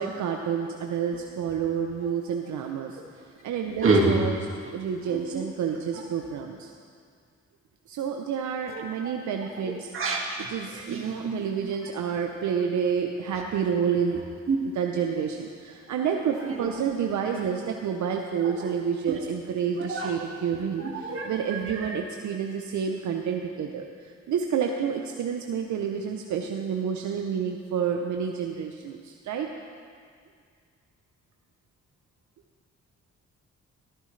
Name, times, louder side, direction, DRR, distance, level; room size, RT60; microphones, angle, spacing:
voice 1, 0.0-3.0 3.4-4.4 4.7-6.7 7.9-9.9 10.5-14.2 14.6-23.8 24.3-29.5, right 7 dB, 80° right, 2 dB, 0.7 m, -29 dB
voice 2, 3.8-4.2 5.3-5.4 9.0-9.1 9.6-10.5 10.9-11.4 14.5-14.6 16.4-16.6 19.1-19.2 19.9-20.1 20.8-21.3 21.8-21.9, right 3 dB, 45° right, -1 dB, 2.0 m, -26 dB
14.0 x 12.5 x 3.2 m, 2.1 s
cardioid pair, 85°, 29 cm